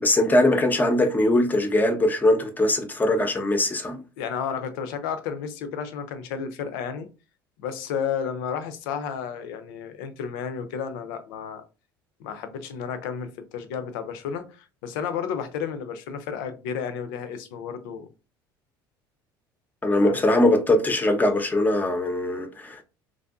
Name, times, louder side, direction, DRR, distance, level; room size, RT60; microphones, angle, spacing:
voice 1, 0.0-4.0 19.8-22.8, left 1 dB, 15° left, 0.7 m, -21 dB
voice 2, 4.2-7.1 7.6-11.6 12.2-18.1 20.0-20.2, left 7 dB, 65° left, 0.6 m, -32 dB
3.3 x 2.6 x 2.3 m
hypercardioid pair, 70°, 12 cm